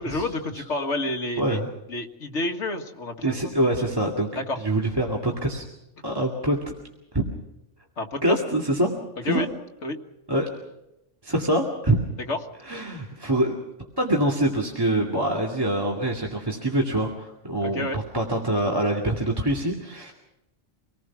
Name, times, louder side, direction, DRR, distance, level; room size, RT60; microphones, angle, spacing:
voice 1, 0.0-1.6 1.9-3.5 4.4-4.6 8.0-8.4 9.3-9.5 9.8-10.0 12.3-12.4 17.6-18.0, left 2 dB, 65° left, 3 dB, 2.0 m, -29 dB
voice 2, 1.4-1.7 3.2-4.3 4.6-5.6 6.0-6.6 7.1-7.3 8.2-8.9 9.2-9.5 10.3-10.5 11.2-12.0 12.6-13.6 14.0-20.1, right 1 dB, 20° right, -1 dB, 2.3 m, -25 dB
26.5 x 19.0 x 6.0 m, 0.88 s
omnidirectional pair, 1.3 m